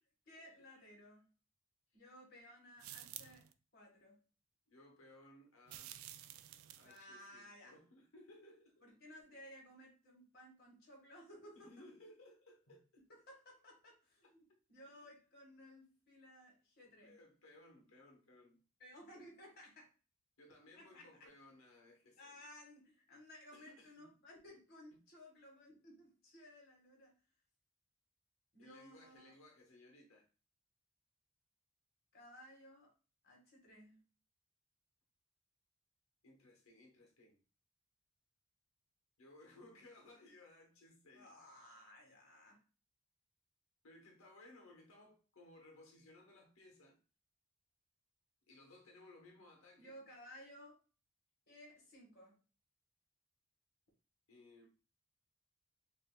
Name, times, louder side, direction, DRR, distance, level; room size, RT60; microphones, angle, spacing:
voice 1, 0.2-1.3 1.9-3.4 3.7-4.2 6.8-7.7 8.8-11.9 13.1-17.2 18.8-19.9 20.8-21.3 22.2-27.1 28.5-29.3 32.1-32.9 33.2-34.0 41.1-42.6 49.8-50.8 51.5-52.4, equal, 45° left, 1.6 m, -58 dB
sound 1, 2.8-3.5 5.7-7.0, right 12 dB, 80° right, 0.3 m, -51 dB
voice 2, 4.7-5.9 6.8-9.2 11.6-13.0 14.2-14.3 14.8-15.1 17.0-18.6 20.4-22.4 23.5-24.1 28.6-30.3 36.2-37.4 39.2-41.4 43.8-47.0 48.5-50.0 54.3-54.7, left 1 dB, 80° left, 1.0 m, -61 dB
6.6 x 2.6 x 2.2 m
head